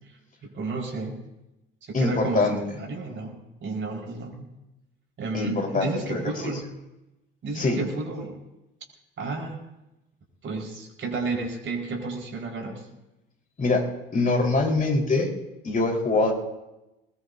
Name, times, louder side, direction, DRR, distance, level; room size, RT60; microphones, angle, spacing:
voice 1, 0.4-1.2 1.9-4.5 5.2-6.6 7.4-8.4 9.2-9.6 10.4-12.9, right 3 dB, 40° right, 0 dB, 4.9 m, -32 dB
voice 2, 1.9-2.6 5.3-6.5 7.5-7.8 13.6-13.8 14.1-15.3 15.6-16.3, left 3 dB, 30° left, 0 dB, 4.4 m, -24 dB
21.0 x 20.5 x 2.8 m, 0.98 s
hypercardioid pair, 60°, 29 cm